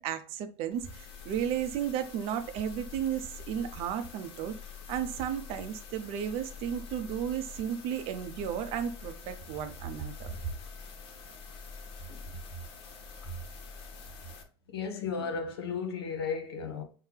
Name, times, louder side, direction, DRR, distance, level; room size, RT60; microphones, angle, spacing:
voice 1, 0.0-4.6 4.9-10.5, right 9 dB, 50° right, 0.6 m, -34 dB
sound 1, 0.7-14.4, left 5 dB, 45° left, 0.9 m, -46 dB
voice 2, 14.7-16.8, left 5 dB, 75° left, 0.8 m, -35 dB
5.6 x 2.1 x 3.3 m
hypercardioid pair, 85°, 13 cm